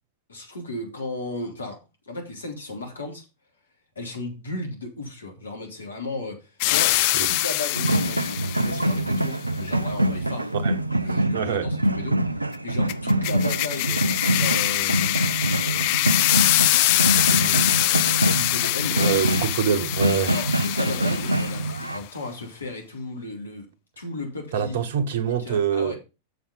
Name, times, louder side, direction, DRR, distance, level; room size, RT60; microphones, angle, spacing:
voice 1, 0.3-1.8 2.1-3.2 3.9-10.5 11.0-14.0 14.3-15.2 15.5-16.1 16.9-19.1 20.3-23.7 24.0-24.8 25.2-26.0, left 2 dB, 75° left, 3.1 m, -35 dB
sound 1, 6.6-8.9 12.9-21.8, left 17 dB, 45° left, 0.4 m, -24 dB
sound 2, 7.7-22.0, right 1 dB, 85° right, 0.4 m, -25 dB
voice 2, 11.0-11.7 18.9-20.3 24.5-26.0, right 7 dB, 55° right, 1.2 m, -25 dB
7.3 x 6.8 x 5.3 m
figure-of-eight pair, 90°, 0 cm